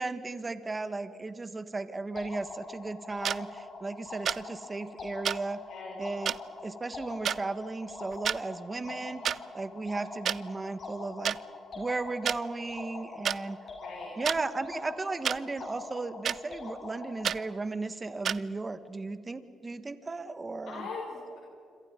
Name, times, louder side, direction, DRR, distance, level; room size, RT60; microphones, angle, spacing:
voice 1, 0.0-5.6 6.0-6.3 6.6-11.4 11.7-13.6 14.2-20.9, right 3 dB, 25° right, 11 dB, 1.6 m, -35 dB
sound 1, 2.2-17.5, left 3 dB, 45° left, 6.7 m, -44 dB
sound 2, 3.2-3.4 4.3-4.4 5.2-5.4 6.3-6.4 7.2-7.4 8.1-8.4 9.2-9.4 10.3-10.4 11.2-11.4 12.3-12.4 13.2-13.4 14.2-14.4 15.2-15.4 16.2-16.4 17.2-17.4 18.2-18.4, right 8 dB, 60° right, 0.5 m, -29 dB
voice 2, 5.7-6.0 8.7-9.3 13.8-14.2 20.7-21.4, left 4 dB, 85° left, -3 dB, 5.8 m, -42 dB
27.5 x 26.5 x 5.4 m, 2.4 s
cardioid pair, 90°, 0 cm